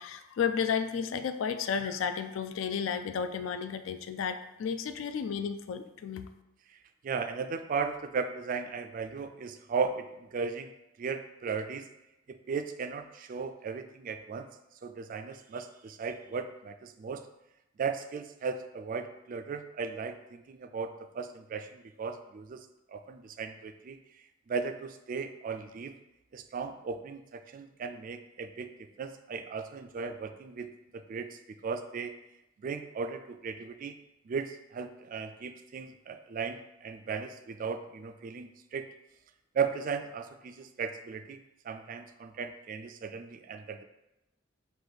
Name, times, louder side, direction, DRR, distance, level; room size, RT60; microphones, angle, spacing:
voice 1, 0.0-6.3, left 6 dB, 80° left, 9 dB, 0.3 m, -32 dB
voice 2, 7.0-10.7 11.0-11.8 12.3-14.5 14.8-17.2 17.8-24.0 24.5-25.9 26.3-32.2 32.6-33.9 34.3-38.9 39.5-43.8, right 5 dB, 45° right, 9 dB, 0.3 m, -36 dB
4.8 x 2.5 x 4.0 m, 0.90 s
head